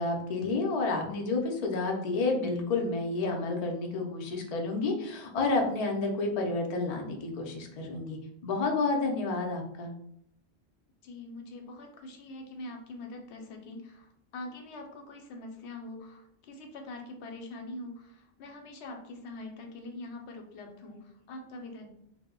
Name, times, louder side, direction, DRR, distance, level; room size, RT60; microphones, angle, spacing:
voice 1, 0.0-9.9, left 3 dB, 50° left, 2 dB, 0.4 m, -30 dB
voice 2, 11.0-21.9, left 2 dB, 90° left, 3 dB, 0.9 m, -44 dB
2.1 x 2.0 x 3.6 m, 0.72 s
omnidirectional pair, 1.1 m